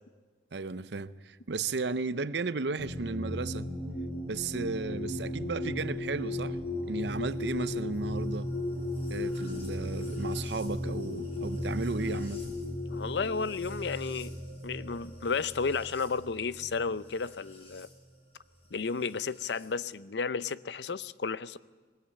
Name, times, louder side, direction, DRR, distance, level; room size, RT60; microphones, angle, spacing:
voice 1, 0.5-3.7 4.2-6.6 6.9-8.5 9.1-12.5, right 3 dB, 70° right, 0.7 m, -34 dB
sound 1, 2.8-17.9 19.0-19.6, left 1 dB, 35° left, 7.4 m, -36 dB
voice 2, 12.9-14.4 14.6-17.9 18.7-21.6, left 5 dB, 70° left, 0.6 m, -33 dB
20.5 x 19.5 x 8.6 m
head